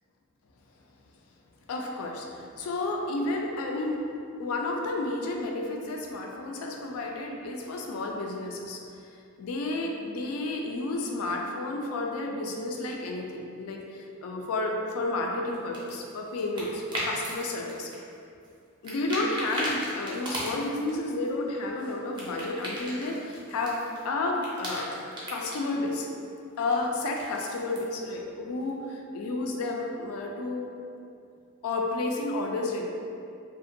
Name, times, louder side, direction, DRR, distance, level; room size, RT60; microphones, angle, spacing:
voice 1, 1.7-4.0 4.4-8.8 9.4-17.9 18.8-23.8 24.0-24.9 25.3-26.1 26.6-30.7 31.6-32.8, left 2 dB, 75° left, 1 dB, 0.3 m, -31 dB
sound 1, 15.5-17.4 17.7-18.6 18.8-20.9 21.3-24.1 24.3-25.6 26.7-28.0, equal, 20° right, 0.5 m, -37 dB
2.5 x 2.1 x 2.6 m, 2.5 s
head